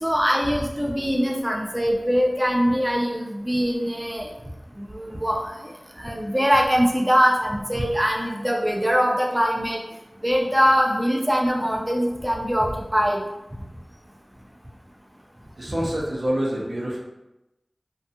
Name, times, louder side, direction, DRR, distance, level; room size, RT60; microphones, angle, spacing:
voice 1, 0.0-4.3 4.8-9.8 10.2-13.2, equal, 15° right, -1 dB, 0.4 m, -22 dB
voice 2, 15.6-17.0, equal, 80° right, -4 dB, 0.6 m, -26 dB
2.6 x 2.3 x 2.7 m, 0.94 s
wide cardioid pair, 50°, 0 cm